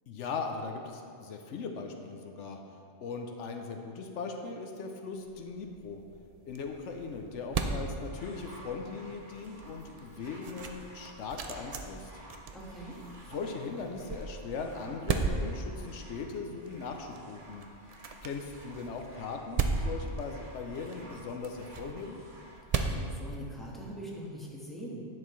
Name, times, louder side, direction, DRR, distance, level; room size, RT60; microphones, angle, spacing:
voice 1, 0.1-2.6 3.0-6.0 6.4-12.1 13.3-17.6 18.2-22.2, left 4 dB, 75° left, 3 dB, 1.0 m, -39 dB
sound 1, 5.2-24.0, right 4 dB, 50° right, 0.4 m, -38 dB
sound 2, 8.0-22.6 23.5-23.6, equal, 85° right, 2.2 m, -53 dB
voice 2, 12.5-13.0 22.8-25.1, equal, ahead, -5 dB, 1.3 m, -42 dB
10.5 x 7.9 x 3.1 m, 2.4 s
omnidirectional pair, 1.2 m